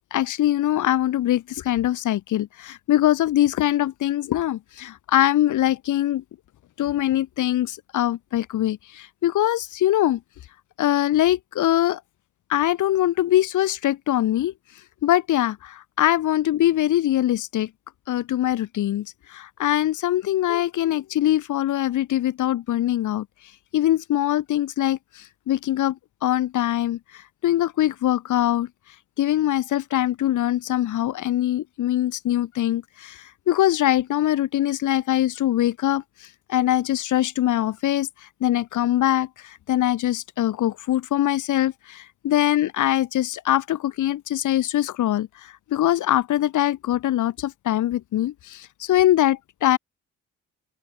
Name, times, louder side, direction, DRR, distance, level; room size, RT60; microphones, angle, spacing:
voice 1, 0.1-6.2 6.8-10.2 10.8-12.0 12.5-14.5 15.0-17.7 18.1-23.3 23.7-28.7 29.2-49.8, left 13 dB, 80° left, 4.6 m, -23 dB
open air
cardioid pair, 90°, 30 cm